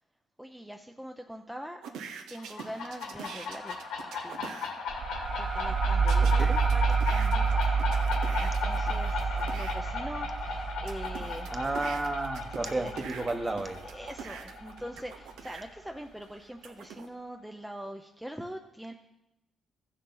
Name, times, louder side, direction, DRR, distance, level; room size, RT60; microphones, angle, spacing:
voice 1, 0.4-1.8 2.3-4.5 5.4-7.9 8.2-11.6 12.8-12.9 13.8-18.9, equal, 5° right, 3 dB, 0.7 m, -43 dB
sound 1, 1.8-4.7 6.1-9.7 10.4-15.7 16.2-17.1, right 6 dB, 85° right, 1.0 m, -44 dB
sound 2, 2.4-15.8, left 5 dB, 85° left, 2.3 m, -36 dB
sound 3, 4.9-14.1, right 5 dB, 45° right, 0.4 m, -29 dB
voice 2, 11.5-13.8, right 2 dB, 25° right, 6 dB, 1.2 m, -32 dB
15.0 x 6.5 x 4.0 m, 0.89 s
cardioid pair, 90°, 0 cm